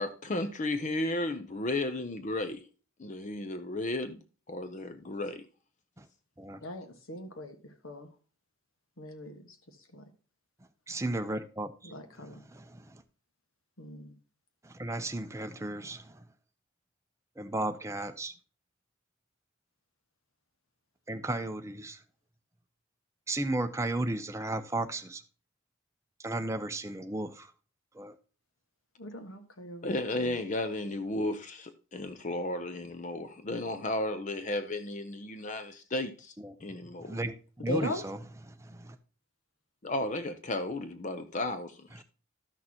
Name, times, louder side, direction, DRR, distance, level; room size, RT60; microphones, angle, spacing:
voice 1, 0.0-2.6 3.0-4.2 4.5-5.4 29.8-36.3 36.6-37.2 39.8-42.0, left 2 dB, 35° left, 0.6 m, -34 dB
voice 2, 6.6-8.1 9.0-10.1 11.8-12.4 13.8-14.2 29.0-29.9 30.2-30.4 37.7-38.0, left 1 dB, 75° left, 1.5 m, -40 dB
voice 3, 10.9-11.9 12.2-13.0 14.6-16.2 17.4-18.3 21.1-22.0 23.3-25.2 26.2-27.5 27.9-28.1 36.4-36.5 37.0-37.3 37.6-38.2 38.6-39.0, right 2 dB, 15° right, 0.6 m, -34 dB
12.5 x 6.4 x 2.9 m
head